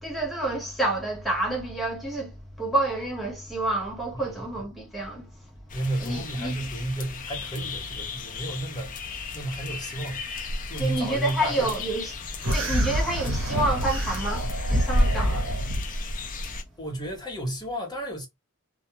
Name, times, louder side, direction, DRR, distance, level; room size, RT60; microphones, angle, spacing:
voice 1, 0.0-5.3 6.0-6.5 10.8-12.1 12.5-15.5, right 2 dB, ahead, 1.0 m, -29 dB
sound 1, 5.7-16.6, left 2 dB, 35° left, 0.4 m, -33 dB
voice 2, 5.7-10.2 10.7-11.7 16.8-18.3, right 1 dB, 20° left, 0.9 m, -32 dB
sound 2, 12.4-15.9, equal, 65° right, 0.9 m, -27 dB
2.3 x 2.3 x 2.8 m
head